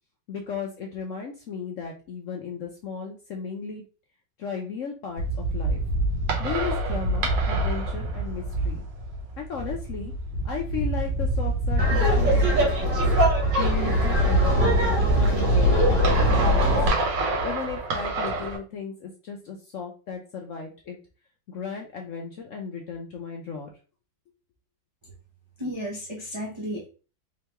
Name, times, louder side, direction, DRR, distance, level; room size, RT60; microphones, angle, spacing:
voice 1, 0.3-3.8 4.4-5.8 6.4-8.8 9.4-10.1 10.4-13.0 13.6-16.8 17.4-21.0 21.5-23.7, left 6 dB, 65° left, 1 dB, 0.8 m, -35 dB
sound 1, 5.2-18.6, right 2 dB, 90° right, 1.7 m, -26 dB
Laughter, 11.8-16.9, equal, 70° right, 2.0 m, -22 dB
voice 2, 25.6-26.9, equal, 40° right, -3 dB, 0.4 m, -33 dB
3.7 x 3.3 x 2.9 m, 0.35 s
omnidirectional pair, 1.9 m